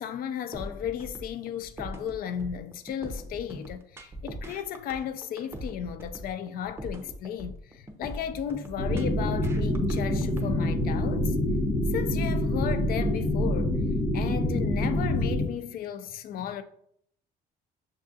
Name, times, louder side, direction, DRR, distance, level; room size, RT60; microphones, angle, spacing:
voice 1, 0.0-11.4 11.9-13.8 14.1-16.6, left 9 dB, 60° left, 0.4 m, -34 dB
sound 1, 0.5-10.5, equal, 15° right, 0.6 m, -41 dB
sound 2, 8.8-15.5, left 1 dB, 85° left, 1.2 m, -26 dB
6.5 x 2.4 x 2.6 m
cardioid pair, 110°, 17 cm